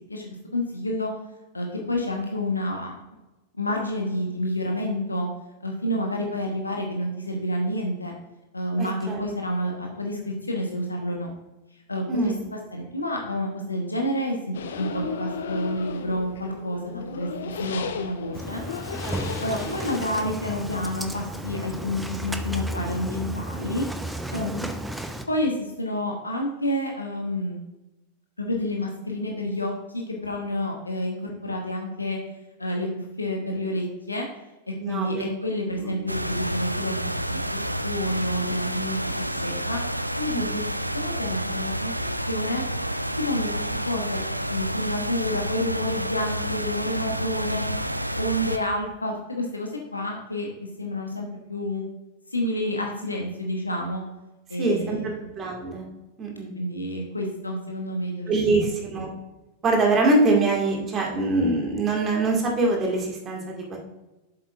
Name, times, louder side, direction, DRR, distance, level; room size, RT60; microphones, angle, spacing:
voice 1, 0.1-1.1 1.5-3.0 3.6-5.3 5.6-8.1 8.5-11.3 11.9-18.6 19.4-23.8 24.3-24.6 25.3-27.6 28.4-32.2 32.6-32.9 33.2-34.3 34.7-37.0 37.3-37.4 37.8-39.0 39.3-39.8 40.2-40.6 40.9-41.9 42.2-42.6 43.2-43.5 43.8-44.2 44.5-47.6 48.1-50.5 50.8-51.8 52.3-54.0 54.5-55.2 56.6-58.3 58.6-58.7, left 1 dB, 80° left, 1 dB, 1.0 m, -29 dB
voice 2, 8.8-9.2 12.1-12.5 19.1-19.2 19.6-19.7 34.8-35.3 35.8-35.9 40.3-40.6 54.6-55.9 56.2-56.5 58.3-59.1 59.6-63.8, right 2 dB, 25° right, 0 dB, 2.0 m, -24 dB
sound 1, 14.5-20.0, left 6 dB, 65° left, 0.6 m, -34 dB
Engine starting, 18.3-25.2, right 1 dB, 5° right, 0.6 m, -33 dB
sound 2, 36.1-48.6, equal, 90° right, 0.3 m, -29 dB
7.8 x 7.4 x 2.5 m, 1.0 s
figure-of-eight pair, 90°, 0 cm